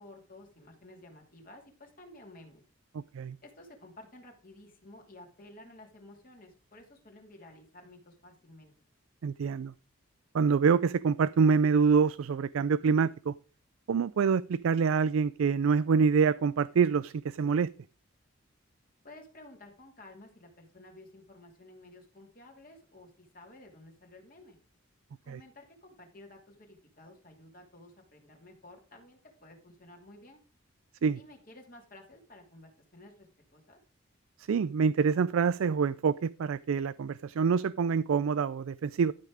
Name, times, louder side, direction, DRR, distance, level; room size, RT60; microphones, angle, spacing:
voice 1, 0.0-2.6 3.4-8.7 19.0-24.6 25.2-30.4 31.1-33.8, left 1 dB, 40° left, 1 dB, 2.6 m, -53 dB
voice 2, 9.2-9.7 10.3-13.3 13.9-17.7 25.3-25.4 31.0-31.2 34.5-39.1, right 5 dB, 75° right, 17 dB, 0.4 m, -26 dB
12.5 x 5.6 x 4.8 m, 0.37 s
head